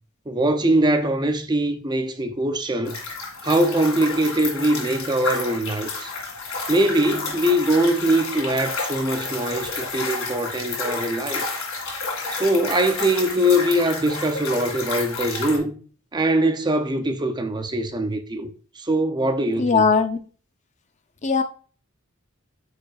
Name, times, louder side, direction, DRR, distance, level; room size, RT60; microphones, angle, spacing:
voice 1, 0.3-3.0 3.4-6.1 6.7-11.4 12.3-15.8 16.1-18.5 18.8-19.9, right 1 dB, 20° right, 0.6 m, -22 dB
sound 1, 2.8-15.6, left 4 dB, 70° left, 2.3 m, -30 dB
voice 2, 19.6-20.2 21.2-21.4, left 5 dB, 35° left, 0.6 m, -19 dB
8.9 x 4.9 x 2.4 m
head